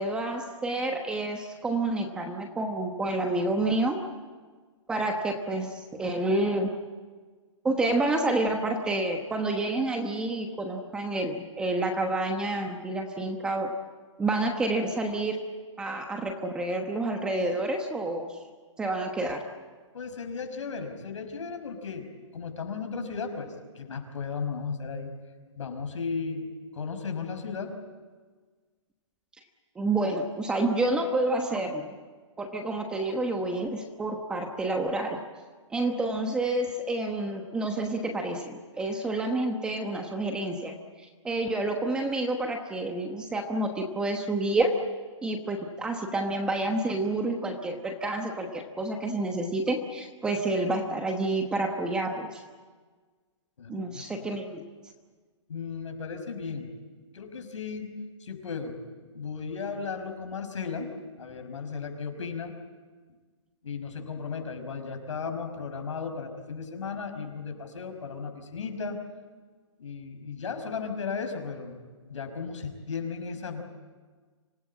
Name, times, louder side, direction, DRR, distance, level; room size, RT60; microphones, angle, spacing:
voice 1, 0.0-4.0 4.9-6.7 7.6-13.7 14.2-15.4 15.8-18.4 18.8-19.4 29.7-31.9 32.4-35.2 35.7-44.7 45.2-52.4 53.7-54.6, right 2 dB, 5° right, 4 dB, 1.1 m, -29 dB
voice 2, 19.9-25.1 25.6-26.5 26.7-27.7 53.6-54.3 55.5-56.7 57.1-57.9 58.2-58.8 59.1-60.9 61.2-62.5 63.6-69.0 69.8-71.8 72.1-73.6, left 5 dB, 75° left, 5 dB, 5.6 m, -35 dB
26.0 x 18.5 x 8.7 m, 1.5 s
hypercardioid pair, 170°, 16 cm